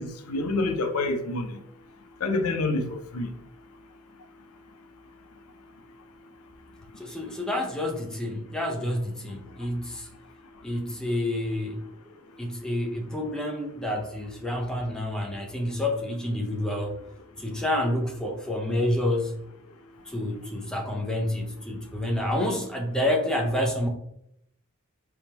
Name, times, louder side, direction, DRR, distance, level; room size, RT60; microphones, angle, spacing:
voice 1, 0.0-1.5 2.2-3.3, left 2 dB, 85° left, 0.6 m, -27 dB
voice 2, 7.0-10.1 10.6-11.8 12.4-17.0 17.4-19.4 20.1-23.9, left 1 dB, 5° left, 0.6 m, -28 dB
4.3 x 3.5 x 2.9 m
head